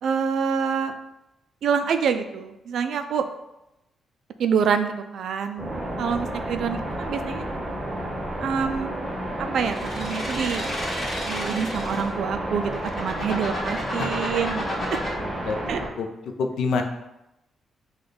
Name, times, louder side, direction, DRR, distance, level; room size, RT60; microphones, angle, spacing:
voice 1, 0.0-0.9 1.6-3.3 4.4-5.7 6.0-7.5 8.4-8.9 9.4-10.6 11.3-15.0 15.7-15.8, right 6 dB, 60° right, 8 dB, 0.3 m, -26 dB
sound 1, 5.6-15.9, right 1 dB, 15° right, 0.8 m, -31 dB
voice 2, 6.0-6.3 14.0-14.1 14.8-15.6 16.0-16.1 16.4-16.8, left 4 dB, 75° left, 5 dB, 0.5 m, -28 dB
sound 2, 9.6-12.1 12.6-15.1, left 1 dB, 25° left, 1.1 m, -32 dB
5.1 x 2.2 x 3.9 m, 0.91 s
wide cardioid pair, 165°, 0 cm